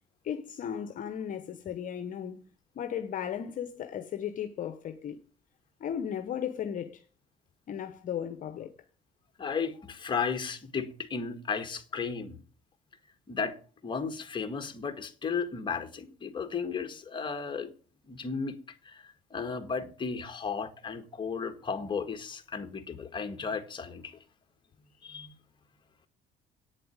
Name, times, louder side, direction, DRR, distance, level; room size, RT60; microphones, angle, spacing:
voice 1, 0.2-2.4 2.7-5.2 5.8-7.0 7.7-8.7, left 9 dB, 50° left, 1.0 m, -35 dB
voice 2, 9.4-12.4 13.3-13.6 13.8-17.7 18.1-18.5 18.8-19.0 19.3-24.1 25.0-25.3, left 5 dB, 30° left, 1.8 m, -34 dB
8.9 x 7.7 x 8.9 m
cardioid pair, 110°, 17 cm